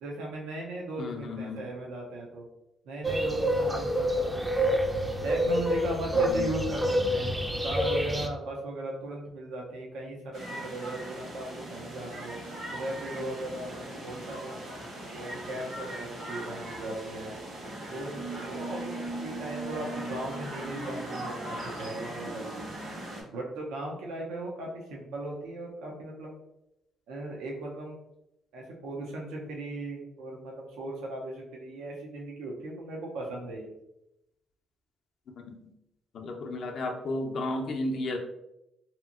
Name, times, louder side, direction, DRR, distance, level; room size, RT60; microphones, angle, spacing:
voice 1, 0.0-2.5 2.9-4.8 5.2-7.4 7.6-12.3 12.7-17.4 17.9-22.7 23.3-26.4 27.1-28.0 28.5-33.8, right 1 dB, 90° right, -1 dB, 0.5 m, -38 dB
voice 2, 1.0-1.6 6.1-6.5 35.4-35.7 36.1-38.2, left 2 dB, 65° left, 3 dB, 0.5 m, -33 dB
sound 1, 3.0-8.3, equal, 15° right, 0.4 m, -27 dB
sound 2, 10.3-23.2, right 1 dB, 65° right, 1.2 m, -39 dB
2.8 x 2.5 x 2.4 m, 0.85 s
cardioid pair, 90°, 0 cm